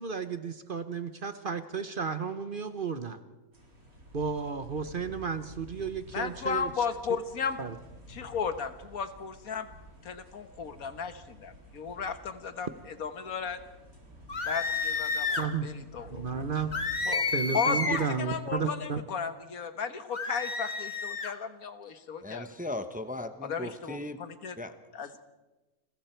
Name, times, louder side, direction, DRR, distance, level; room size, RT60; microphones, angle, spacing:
voice 1, 0.0-3.2 4.1-6.7 7.6-7.8 15.4-15.7 16.1-16.8 17.3-19.0, right 6 dB, 45° right, 10 dB, 0.9 m, -33 dB
sound 1, 3.5-17.1, equal, 75° right, 4.9 m, -51 dB
voice 2, 6.1-7.6 8.1-9.7 10.0-12.7 13.0-13.6 14.5-16.2 17.1-17.3 17.5-22.5 23.4-24.5 24.9-25.2, left 6 dB, 80° left, 10 dB, 1.8 m, -35 dB
sound 2, 14.3-15.5 16.7-18.1 20.1-21.3, left 4 dB, 30° left, 1.5 m, -31 dB
voice 3, 22.2-24.2 24.6-24.7, left 1 dB, 5° right, 9 dB, 0.8 m, -37 dB
29.5 x 21.5 x 4.5 m, 1.1 s
omnidirectional pair, 1.5 m